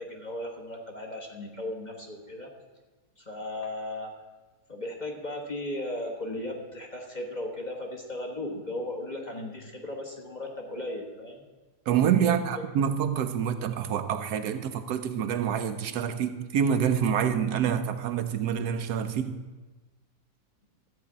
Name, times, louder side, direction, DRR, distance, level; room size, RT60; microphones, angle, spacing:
voice 1, 0.0-2.5 3.3-4.1 4.7-11.4 12.2-12.3, left 1 dB, 30° left, 1.4 m, -36 dB
voice 2, 11.9-19.4, right 8 dB, 75° right, 1.2 m, -27 dB
13.5 x 4.6 x 8.6 m
omnidirectional pair, 1.7 m